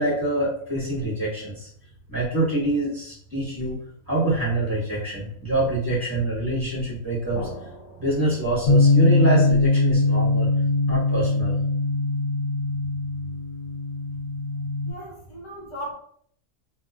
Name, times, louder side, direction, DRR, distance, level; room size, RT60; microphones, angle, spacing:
voice 1, 0.0-1.7 2.1-3.8 4.1-7.4 8.0-10.5 10.9-11.6, right 2 dB, 15° right, -8 dB, 1.2 m, -25 dB
sound 1, 7.4-9.7, left 1 dB, 70° left, 1.4 m, -41 dB
Bass guitar, 8.7-14.9, left 2 dB, 85° left, 1.2 m, -21 dB
voice 2, 14.8-15.9, equal, 25° left, -4 dB, 0.8 m, -37 dB
2.8 x 2.3 x 2.4 m, 0.62 s
omnidirectional pair, 1.5 m